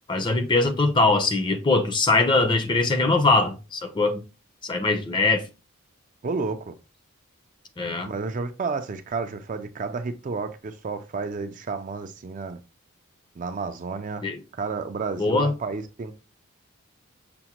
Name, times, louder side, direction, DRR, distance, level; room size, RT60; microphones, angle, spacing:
voice 1, 0.1-4.2 4.6-5.4 7.8-8.1 14.2-14.4 15.2-15.5, left 3 dB, 20° left, 0.5 m, -22 dB
voice 2, 6.2-6.7 8.0-12.6 13.4-14.3 14.5-16.1, right 4 dB, 35° right, 0.3 m, -31 dB
5.9 x 2.1 x 2.8 m
head